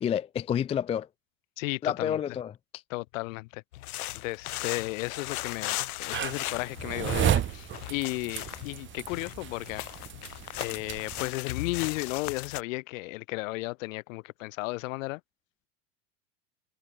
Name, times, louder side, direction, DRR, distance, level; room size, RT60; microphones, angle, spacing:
voice 1, 0.0-1.1 1.8-2.8, left 9 dB, 15° left, 0.6 m, -29 dB
voice 2, 1.6-2.2 2.9-3.6 4.1-9.8 10.6-15.2, left 23 dB, 60° left, 3.1 m, -34 dB
sound 1, 3.7-12.6, left 17 dB, 85° left, 1.3 m, -37 dB
sound 2, 6.1-11.3, right 11 dB, 25° right, 2.5 m, -33 dB
supercardioid pair, 150°, 43 cm